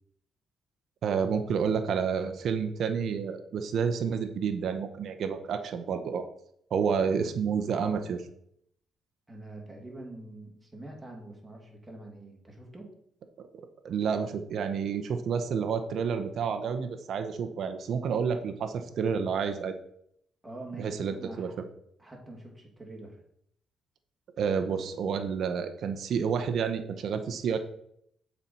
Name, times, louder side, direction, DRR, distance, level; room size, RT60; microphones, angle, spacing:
voice 1, 1.0-6.2 6.7-8.2 13.4-13.5 13.8-19.8 20.8-21.5 24.4-27.6, right 6 dB, 65° right, 7 dB, 0.8 m, -29 dB
voice 2, 9.3-12.9 20.4-21.5 22.0-23.2, right 2 dB, 10° right, -1 dB, 2.6 m, -45 dB
7.3 x 4.4 x 5.4 m, 0.70 s
cardioid pair, 90°, 0 cm